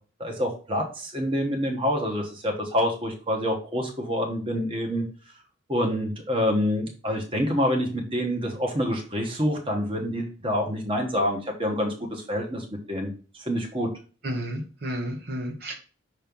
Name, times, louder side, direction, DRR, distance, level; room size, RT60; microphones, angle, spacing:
voice 1, 0.2-5.0 5.7-13.9, equal, 25° right, 2 dB, 1.2 m, -27 dB
voice 2, 14.2-15.7, equal, 55° right, 1 dB, 1.2 m, -31 dB
5.9 x 3.2 x 5.2 m, 0.37 s
head